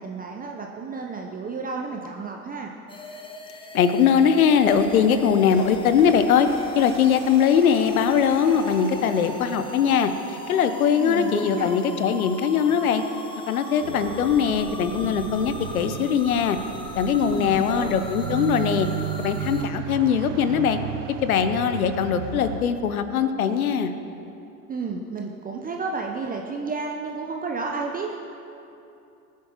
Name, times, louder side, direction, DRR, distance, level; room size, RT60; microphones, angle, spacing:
voice 1, 0.0-2.8 11.0-11.7 17.2-17.9 24.7-28.2, right 4 dB, 20° right, 1 dB, 0.8 m, -31 dB
sound 1, 2.9-19.6, left 2 dB, 10° left, 1.1 m, -40 dB
voice 2, 3.7-6.5 6.7-10.1 10.5-13.0 13.5-16.6 17.0-18.9 19.2-20.8 21.2-23.9, left 7 dB, 75° left, 10 dB, 0.9 m, -21 dB
sound 2, 4.5-10.2 10.6-10.9 12.1-12.2 12.5-12.6 12.9-13.1, right 2 dB, 45° right, 3.0 m, -43 dB
sound 3, 13.8-22.6, right 10 dB, 60° right, 0.8 m, -34 dB
20.0 x 9.4 x 3.1 m, 2.7 s
figure-of-eight pair, 80°, 43 cm